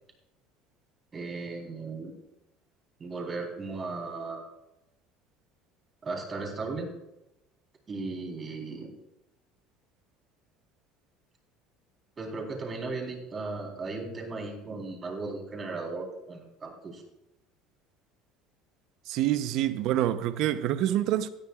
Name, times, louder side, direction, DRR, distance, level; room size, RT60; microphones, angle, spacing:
voice 1, 1.1-2.1 3.0-4.4 6.0-6.9 7.9-8.9 12.2-17.0, right 3 dB, 30° right, 3.8 m, -36 dB
voice 2, 19.1-21.3, right 12 dB, 65° right, 0.8 m, -26 dB
18.0 x 12.5 x 2.4 m
supercardioid pair, 115°, 0 cm